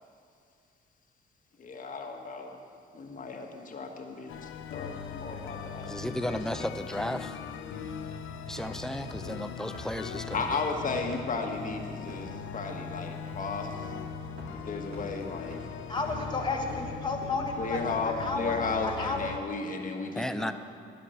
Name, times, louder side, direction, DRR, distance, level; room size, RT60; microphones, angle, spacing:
voice 1, 1.6-2.6 2.9-5.9 6.3-6.4 10.3-13.8 14.5-15.6 17.6-20.5, left 4 dB, 40° left, 2 dB, 1.5 m, -34 dB
sound 1, 4.3-19.4, left 7 dB, 80° left, 0.8 m, -40 dB
voice 2, 5.9-7.4 8.5-10.6 20.1-20.5, equal, 5° left, 10 dB, 0.5 m, -34 dB
sound 2, 8.6-8.8 9.1-9.2 9.7-9.8 10.3-10.4 10.9-11.0 11.5-11.6 12.1-12.3 12.7-12.8 13.3-13.4 13.8-13.9 14.4-14.5 14.9-15.0 15.5-15.6 16.1-16.3 16.7-16.8 17.2-17.3 17.7-17.8, right 2 dB, 85° right, 4.1 m, -44 dB
voice 3, 15.9-17.8 18.0-18.6 18.8-19.3, left 3 dB, 20° left, 0 dB, 1.4 m, -32 dB
10.0 x 9.8 x 7.8 m, 2.3 s
cardioid pair, 90°, 20 cm